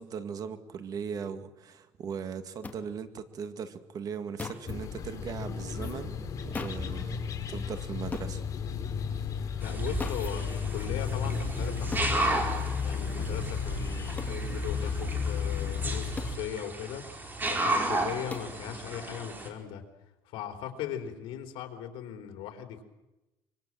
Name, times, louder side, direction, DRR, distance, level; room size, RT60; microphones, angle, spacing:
voice 1, 0.0-6.1 6.4-7.2 7.5-8.4, right 7 dB, 45° right, 10 dB, 2.2 m, -38 dB
sound 1, 2.6-2.8 4.4-4.7 6.5-6.9 8.1-8.3 10.0-10.3 11.9-12.1 14.2-14.4 16.2-16.4 18.3-18.6, left 4 dB, 20° left, 2.9 m, -38 dB
sound 2, 4.7-16.4, left 6 dB, 40° left, 3.9 m, -33 dB
voice 2, 9.6-12.4 12.8-19.8 20.3-22.8, left 9 dB, 80° left, 5 dB, 3.8 m, -39 dB
sound 3, 9.6-19.5, right 2 dB, 20° right, 4.8 m, -34 dB
25.0 x 24.0 x 7.7 m, 1.0 s
cardioid pair, 130°, 9 cm